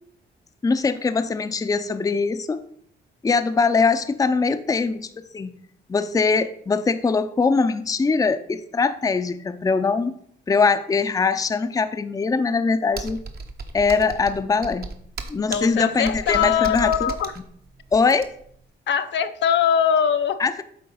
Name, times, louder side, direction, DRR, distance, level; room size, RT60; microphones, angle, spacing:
voice 1, 0.6-2.6 3.2-5.5 5.9-10.2 10.5-13.2 13.7-14.9 15.3-17.1 17.9-18.3 20.4-20.6, left 4 dB, 20° left, 10 dB, 0.5 m, -22 dB
Computer keyboard, 12.9-18.6, right 4 dB, 50° right, 0.9 m, -35 dB
voice 2, 15.5-17.3 18.9-20.4, left 8 dB, 65° left, 9 dB, 0.6 m, -22 dB
8.6 x 3.8 x 5.4 m, 0.65 s
cardioid pair, 90°, 20 cm